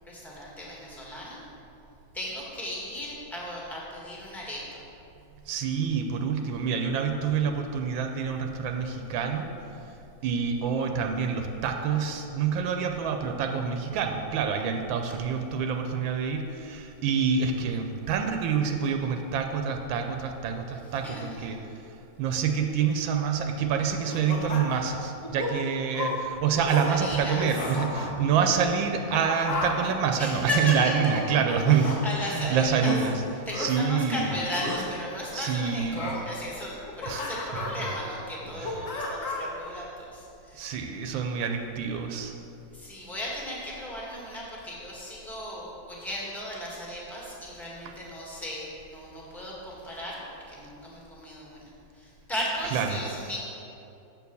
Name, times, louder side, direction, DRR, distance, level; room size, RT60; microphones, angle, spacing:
voice 1, 0.0-1.4 2.1-4.8 16.7-16.8 20.7-21.6 26.6-27.5 30.2-31.1 31.7-33.0 33.4-40.7 42.7-50.2 50.5-53.4, left 1 dB, ahead, -5 dB, 1.4 m, -36 dB
voice 2, 5.5-9.5 10.2-21.6 22.2-33.1 33.6-34.4 35.3-36.1 37.1-37.2 38.6-38.8 40.5-42.3 52.7-53.0, right 6 dB, 90° right, 5 dB, 1.4 m, -27 dB
sound 1, 24.1-24.9 25.2-25.5 25.9-26.2 26.5-26.9 27.2-28.1 28.9-29.9 31.0-32.0 32.8-33.0 33.5-33.7 34.5-34.8 35.9-36.2 36.7-38.0 38.4-39.5, left 3 dB, 50° left, 1.2 m, -33 dB
7.8 x 4.6 x 6.9 m, 2.7 s
omnidirectional pair, 2.1 m